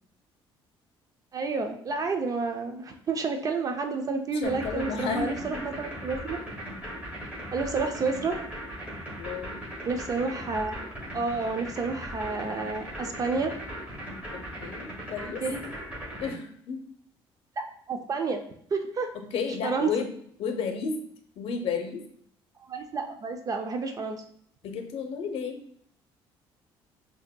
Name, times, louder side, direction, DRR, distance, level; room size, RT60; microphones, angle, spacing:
voice 1, 1.3-6.4 7.5-8.4 9.8-13.5 15.4-15.6 17.6-18.4 18.7-19.1 19.6-19.9 22.7-24.2, right 4 dB, 35° right, 5 dB, 0.5 m, -30 dB
voice 2, 4.3-5.6 9.2-9.6 14.3-15.4 16.2-16.8 19.1-20.1 20.4-21.0 21.4-22.0 24.6-25.6, left 5 dB, 70° left, 5 dB, 0.7 m, -32 dB
sound 1, 4.4-16.3, equal, 15° right, 1.5 m, -38 dB
4.9 x 2.8 x 2.2 m, 0.65 s
cardioid pair, 100°, 10 cm